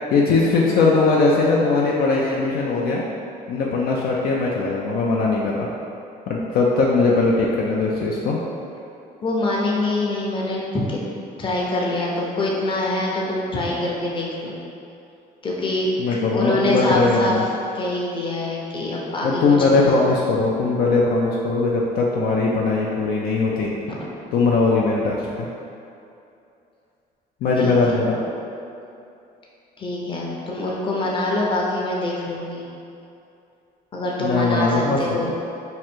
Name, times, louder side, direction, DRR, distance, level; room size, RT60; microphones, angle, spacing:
voice 1, 0.1-3.0 3.5-5.7 6.3-8.4 16.0-17.4 19.2-23.7 24.3-25.5 27.4-28.2 34.2-35.0, left 3 dB, 65° left, -3 dB, 0.5 m, -20 dB
voice 2, 9.2-11.0 11.4-14.5 15.4-15.9 16.3-17.4 17.7-19.4 19.7-19.8 23.9-24.0 27.5-27.7 29.8-32.7 33.9-35.3, left 2 dB, 30° left, -3 dB, 0.7 m, -25 dB
3.1 x 2.5 x 4.4 m, 2.6 s
cardioid pair, 110°, 17 cm